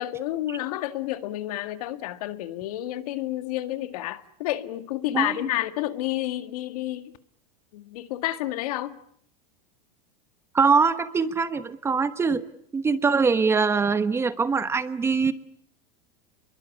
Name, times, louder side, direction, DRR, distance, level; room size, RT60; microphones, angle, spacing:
voice 1, 0.0-7.2 7.7-9.0, left 15 dB, 70° left, 2.0 m, -30 dB
voice 2, 10.5-12.4 12.7-15.3, right 5 dB, 15° right, 1.1 m, -23 dB
27.5 x 22.5 x 8.6 m
supercardioid pair, 155°, 20 cm